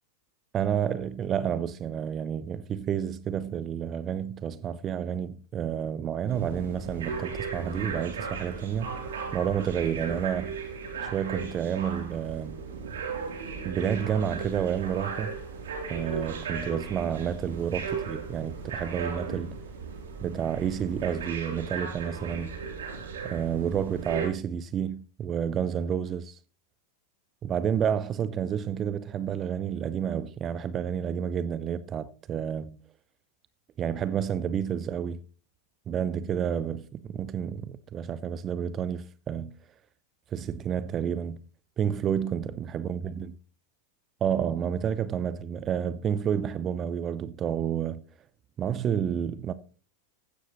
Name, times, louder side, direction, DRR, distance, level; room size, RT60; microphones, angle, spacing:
voice 1, 0.5-9.0 9.3-10.6 11.0-12.6 13.6-15.4 15.9-19.5 20.2-22.5 23.2-26.4 27.4-32.8 33.8-35.2 35.9-39.5 40.3-41.4 41.8-43.3 44.2-48.0 48.6-49.5, right 8 dB, 25° right, 0.6 m, -30 dB
sound 1, 6.3-24.3, right 5 dB, 60° right, 3.4 m, -36 dB
15.5 x 11.5 x 3.1 m
figure-of-eight pair, 90°, 0 cm